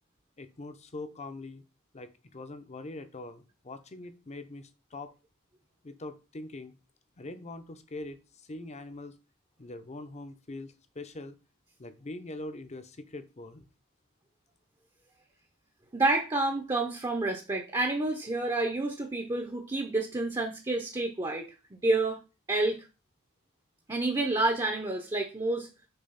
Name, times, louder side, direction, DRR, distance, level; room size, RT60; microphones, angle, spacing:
voice 1, 0.4-1.6 1.9-5.1 5.8-6.7 7.2-9.1 9.6-11.4 11.8-13.7, left 2 dB, 30° left, 10 dB, 0.7 m, -43 dB
voice 2, 15.9-21.5 21.8-22.2 22.5-22.8 23.9-25.7, right 2 dB, 20° right, 4 dB, 0.7 m, -29 dB
6.8 x 3.0 x 5.6 m, 0.30 s
head